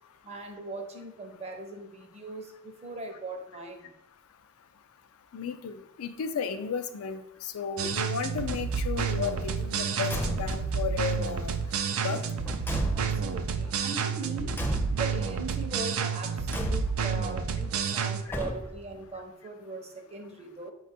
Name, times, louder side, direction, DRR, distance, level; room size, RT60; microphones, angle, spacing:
voice 1, 0.2-3.9 12.9-14.5 14.9-20.7, right 3 dB, 30° right, 3 dB, 0.6 m, -40 dB
voice 2, 5.3-11.6 12.0-12.2 18.3-18.4, left 6 dB, 80° left, 9 dB, 0.4 m, -34 dB
sound 1, 7.8-18.2, right 6 dB, 70° right, 0.4 m, -30 dB
Car / Truck / Slam, 10.0-10.8 12.0-13.5 14.5-15.3 16.5-17.2 18.3-19.0, equal, 10° left, 0.5 m, -34 dB
5.1 x 2.3 x 4.1 m, 0.83 s
head